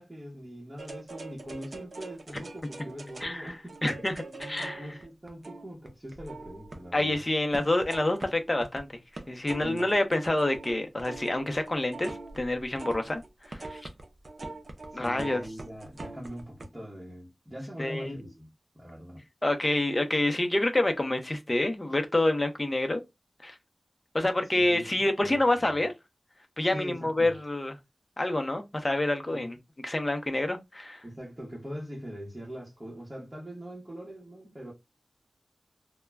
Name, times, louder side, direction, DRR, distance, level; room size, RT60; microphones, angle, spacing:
voice 1, 0.0-3.8 4.2-7.2 9.6-9.8 14.9-18.5 18.7-19.2 24.5-24.9 25.2-25.7 26.7-27.3 29.3-29.5 31.0-34.7, equal, 25° right, 0.9 m, -42 dB
sound 1, 0.8-7.2 7.5-8.8 9.2-16.7, right 2 dB, 65° right, 0.5 m, -43 dB
voice 2, 3.2-3.5 3.8-4.1 4.4-4.9 6.9-8.9 9.3-13.2 13.5-13.8 14.9-15.4 17.8-18.2 19.4-23.0 23.4-23.6 24.1-25.9 26.6-27.7 28.2-29.6 29.8-31.0, left 1 dB, 30° left, 0.6 m, -27 dB
2.2 x 2.1 x 3.3 m
wide cardioid pair, 60°, 0 cm